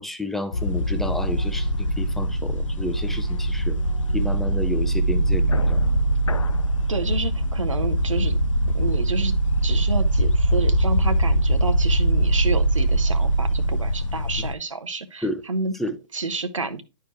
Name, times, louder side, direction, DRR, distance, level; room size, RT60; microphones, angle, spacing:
voice 1, 0.0-3.8 4.1-5.4 5.7-5.8 15.2-15.4 15.8-16.0, left 1 dB, ahead, 0.6 m, -30 dB
sound 1, 0.5-14.5, right 1 dB, 80° left, 0.6 m, -22 dB
voice 2, 6.9-8.4 8.7-9.3 9.6-15.7 16.1-16.8, right 3 dB, 80° right, 0.9 m, -29 dB
11.0 x 4.7 x 3.0 m
figure-of-eight pair, 125°, 16 cm